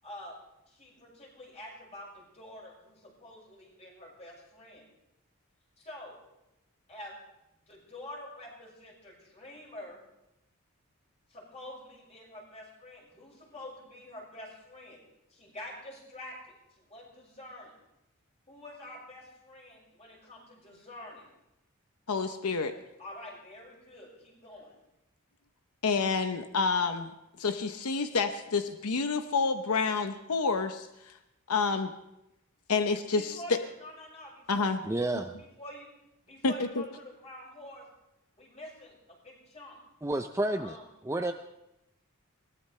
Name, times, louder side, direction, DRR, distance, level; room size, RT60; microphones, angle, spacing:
voice 1, 0.0-0.4 0.7-4.9 5.8-6.2 6.9-7.2 7.7-10.0 11.3-15.0 15.3-17.8 18.5-21.3 23.0-24.8 33.1-35.1 35.4-35.9 36.2-37.9 38.4-39.8 40.6-40.8, left 1 dB, 30° left, -3 dB, 6.0 m, -47 dB
voice 2, 22.1-22.7 25.8-27.1 27.4-31.2 31.5-31.9 32.7-33.6 34.5-34.8 36.4-36.8, left 4 dB, 90° left, 8 dB, 0.9 m, -28 dB
voice 3, 34.8-35.3 40.0-40.8 41.0-41.3, right 1 dB, 15° right, 6 dB, 0.5 m, -30 dB
21.5 x 18.0 x 3.3 m, 0.89 s
head